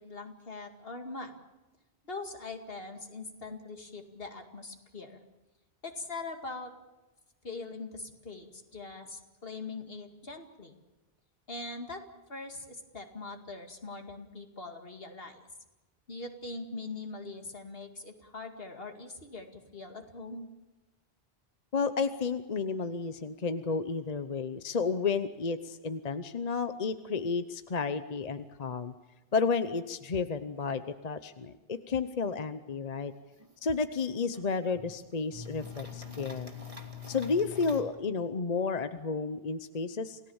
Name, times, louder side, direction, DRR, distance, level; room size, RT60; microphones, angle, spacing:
voice 1, 0.0-1.4 2.0-5.2 5.8-6.7 7.4-10.8 11.5-15.4 16.1-20.5, left 3 dB, 65° left, 5 dB, 2.5 m, -42 dB
voice 2, 21.7-28.9 29.3-33.1 33.6-36.6 37.1-40.2, left 5 dB, 45° left, 11 dB, 0.9 m, -32 dB
sound 1, 33.4-33.5 33.7-33.8 34.3-34.9 35.3-37.8, left 6 dB, 35° right, 2.4 m, -43 dB
28.0 x 17.5 x 7.2 m, 1.1 s
omnidirectional pair, 1.0 m